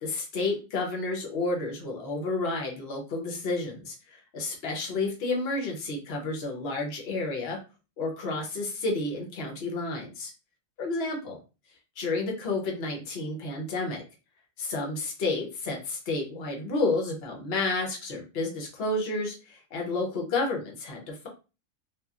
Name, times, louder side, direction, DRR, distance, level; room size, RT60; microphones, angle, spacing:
voice 1, 0.0-7.6 8.0-10.3 10.8-11.4 12.0-14.0 14.6-21.3, left 2 dB, 55° left, 1 dB, 1.0 m, -31 dB
2.9 x 2.4 x 2.4 m, 0.31 s
omnidirectional pair, 1.4 m